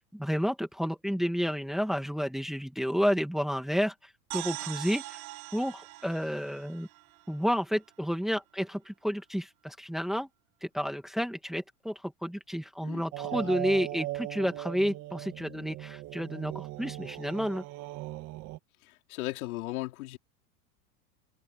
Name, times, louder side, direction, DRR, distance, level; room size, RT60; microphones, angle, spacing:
voice 1, 0.1-3.9 4.3-5.2 5.5-6.9 7.3-10.3 10.6-17.6, equal, ahead, 2.1 m, -31 dB
sound 1, 4.3-7.9, right 19 dB, 75° right, 4.7 m, -42 dB
sound 2, 13.1-18.6, right 18 dB, 40° right, 1.7 m, -38 dB
voice 2, 18.8-20.2, left 18 dB, 75° left, 4.2 m, -37 dB
supercardioid pair, 160°, 43 cm